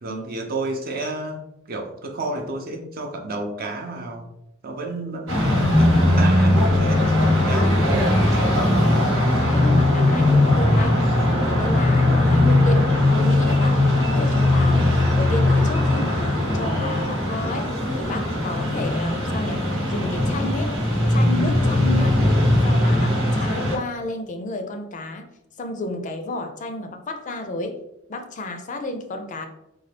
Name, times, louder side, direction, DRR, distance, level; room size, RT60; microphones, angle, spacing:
voice 1, 0.0-1.4 1.7-4.3 4.6-7.1 7.4-8.2, right 2 dB, 50° right, 3 dB, 0.6 m, -31 dB
sound 1, 5.3-23.8, left 1 dB, 90° right, 1.3 m, -19 dB
voice 2, 8.7-20.8 21.1-22.2 22.6-25.3 25.6-27.8 28.1-29.5, left 2 dB, 40° left, 6 dB, 0.4 m, -32 dB
3.9 x 2.3 x 3.2 m, 0.82 s
head